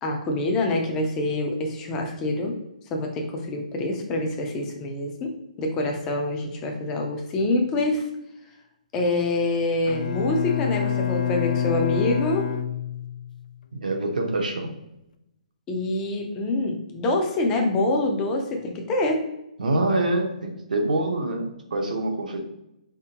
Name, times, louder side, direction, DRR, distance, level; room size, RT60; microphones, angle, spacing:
voice 1, 0.0-2.5 2.9-5.3 5.6-8.0 8.9-12.5 15.7-19.2, left 2 dB, 10° left, 2 dB, 0.4 m, -25 dB
Bowed string instrument, 9.9-13.4, left 8 dB, 85° left, 0.4 m, -27 dB
voice 2, 13.7-14.7 19.6-22.5, right 2 dB, 80° right, 3 dB, 1.0 m, -25 dB
4.3 x 3.6 x 2.8 m, 0.87 s
hypercardioid pair, 180°, 4 cm